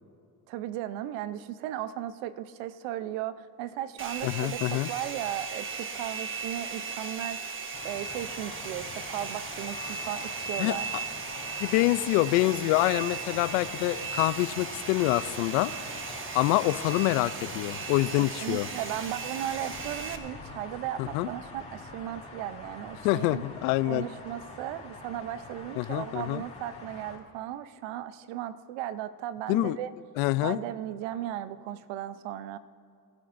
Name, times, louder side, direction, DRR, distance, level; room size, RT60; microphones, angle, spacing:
voice 1, 0.5-7.4 7.8-10.9 18.4-23.4 23.9-29.9 30.4-32.6, right 12 dB, 80° right, 14 dB, 0.7 m, -36 dB
Domestic sounds home sounds, 4.0-20.2, right 5 dB, 25° right, 1.2 m, -37 dB
voice 2, 4.2-4.9 10.6-11.0 11.6-15.7 16.3-18.7 21.0-21.3 23.0-24.1 25.8-26.4 29.5-29.8 30.2-30.6, left 18 dB, 85° left, 17 dB, 0.5 m, -26 dB
sound 1, 7.7-27.2, left 3 dB, 15° left, 3.2 m, -44 dB
24.0 x 11.5 x 2.6 m, 2.4 s
supercardioid pair, 95°, 45 cm